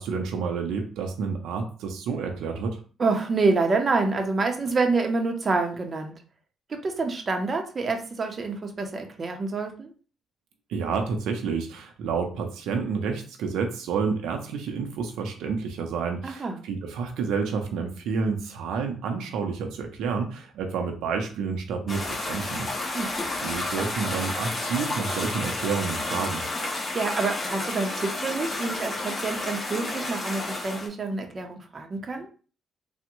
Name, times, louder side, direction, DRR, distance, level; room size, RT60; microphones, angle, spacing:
voice 1, 0.0-2.8 10.7-23.0 23.4-26.4, right 5 dB, 85° right, 4 dB, 0.5 m, -29 dB
voice 2, 3.0-6.2 6.7-9.9 16.2-16.6 22.9-23.1 26.9-32.3, right 3 dB, 40° right, 4 dB, 0.6 m, -27 dB
sound 1, 21.9-30.9, left 2 dB, 30° left, 1.1 m, -31 dB
3.4 x 2.0 x 3.0 m, 0.38 s
cardioid pair, 90°, 0 cm